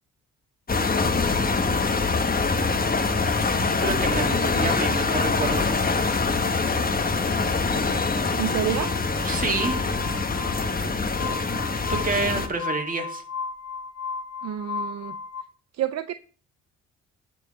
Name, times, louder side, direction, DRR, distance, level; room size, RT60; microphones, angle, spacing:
sound 1, 0.7-12.5, left 4 dB, 30° left, 1.4 m, -24 dB
voice 1, 0.9-1.8 3.6-6.4 9.2-9.8 10.5-10.6 11.9-13.2, right 3 dB, 30° right, 3 dB, 2.3 m, -30 dB
voice 2, 8.4-8.9 14.4-15.2 15.8-16.1, right 11 dB, 60° right, 12 dB, 0.5 m, -28 dB
Glass, 8.7-15.4, left 5 dB, 55° left, 2.1 m, -35 dB
11.5 x 4.5 x 6.6 m, 0.43 s
cardioid pair, 90°, 30 cm